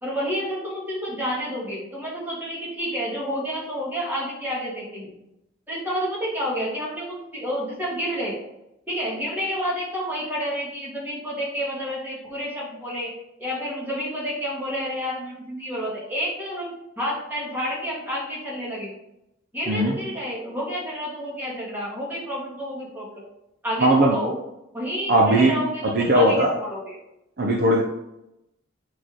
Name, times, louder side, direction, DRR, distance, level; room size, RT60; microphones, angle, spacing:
voice 1, 0.0-5.1 5.7-8.4 8.9-13.1 13.4-18.9 19.5-23.2 23.6-24.4 24.7-27.0, equal, 10° right, -6 dB, 2.8 m, -29 dB
voice 2, 19.7-20.0 23.8-24.2 25.1-25.5 25.9-26.5 27.4-27.8, right 1 dB, 50° right, 0 dB, 0.9 m, -18 dB
8.3 x 4.7 x 3.8 m, 0.87 s
head